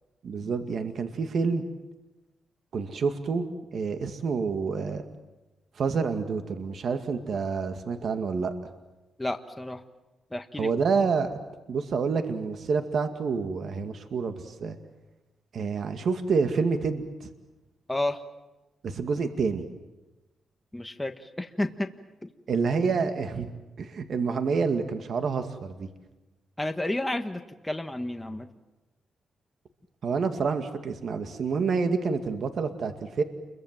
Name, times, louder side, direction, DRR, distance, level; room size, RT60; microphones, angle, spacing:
voice 1, 0.2-1.6 2.7-3.5 3.7-5.0 5.8-8.5 10.6-11.3 11.7-14.8 15.5-17.3 18.8-19.6 22.5-23.5 23.8-25.9 30.0-33.2, right 5 dB, 65° right, 7 dB, 2.1 m, -28 dB
voice 2, 9.2-9.8 10.3-10.7 17.9-18.2 20.7-21.9 22.2-22.3 26.6-28.5, left 1 dB, 10° left, 6 dB, 1.5 m, -31 dB
29.0 x 23.0 x 7.6 m, 1.1 s
cardioid pair, 90°, 0 cm